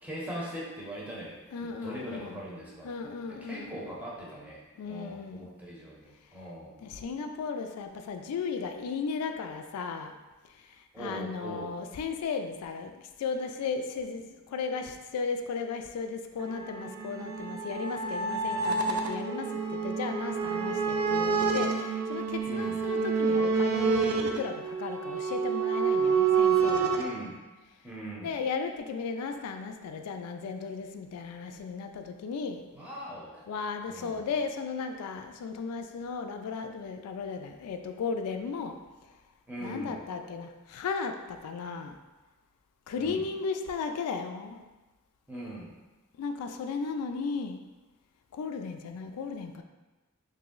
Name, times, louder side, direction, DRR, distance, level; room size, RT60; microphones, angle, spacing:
voice 1, 0.0-1.4 1.8-2.9 3.3-4.6 4.9-6.8 10.9-11.7 22.5-22.8 26.9-27.4 27.8-28.3 32.7-33.5 33.9-34.3 39.5-40.0 43.0-43.2 45.3-45.7, right 1 dB, 5° right, -6 dB, 0.7 m, -40 dB
voice 2, 1.5-2.4 2.8-3.9 4.8-5.5 6.8-10.2 10.5-27.0 28.2-32.6 33.5-38.8 39.6-42.0 42.9-44.6 46.2-47.6 48.3-49.6, left 5 dB, 80° left, 7 dB, 0.3 m, -35 dB
sound 1, 16.4-27.1, right 5 dB, 75° right, 0.4 m, -28 dB
3.0 x 2.6 x 3.7 m, 1.2 s
head